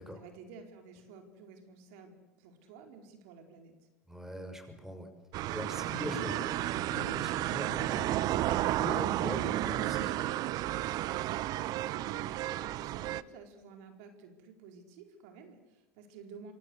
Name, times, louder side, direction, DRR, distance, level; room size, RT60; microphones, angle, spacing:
voice 1, 0.0-3.7 11.0-11.1 11.4-16.5, right 5 dB, 65° right, 5 dB, 4.5 m, -52 dB
voice 2, 4.1-5.1 5.5-10.2, left 1 dB, 5° right, 7 dB, 6.2 m, -42 dB
sound 1, 5.3-13.2, right 14 dB, 50° right, 0.9 m, -32 dB
26.0 x 25.5 x 8.0 m, 0.95 s
hypercardioid pair, 95°, 8 cm